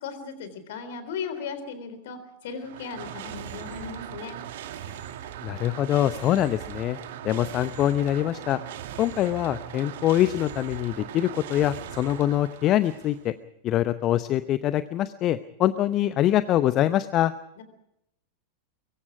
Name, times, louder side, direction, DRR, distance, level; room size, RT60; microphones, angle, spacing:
voice 1, 0.0-4.4 17.6-17.7, left 5 dB, 55° left, 11 dB, 3.8 m, -36 dB
sound 1, 2.4-13.3, right 11 dB, 55° right, 2.1 m, -39 dB
voice 2, 5.4-7.0 7.2-8.6 9.0-13.3 13.6-17.3, left 13 dB, 35° left, 14 dB, 0.8 m, -24 dB
23.5 x 23.0 x 5.0 m, 0.79 s
figure-of-eight pair, 90°, 0 cm